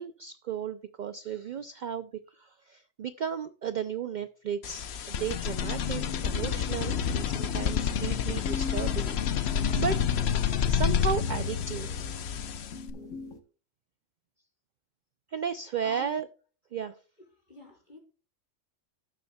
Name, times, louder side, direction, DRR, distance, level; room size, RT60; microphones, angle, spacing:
voice 1, 0.0-10.0 10.7-11.9 15.3-16.3 16.7-17.0, right 7 dB, 70° right, 10 dB, 0.4 m, -34 dB
sound 1, 4.6-12.9, left 8 dB, 60° left, 0.9 m, -29 dB
sound 2, 5.6-13.4, left 5 dB, 80° left, 1.5 m, -41 dB
voice 2, 15.8-16.1 17.5-18.0, left 1 dB, 35° left, -1 dB, 4.1 m, -46 dB
17.5 x 6.9 x 2.3 m, 0.38 s
omnidirectional pair, 1.3 m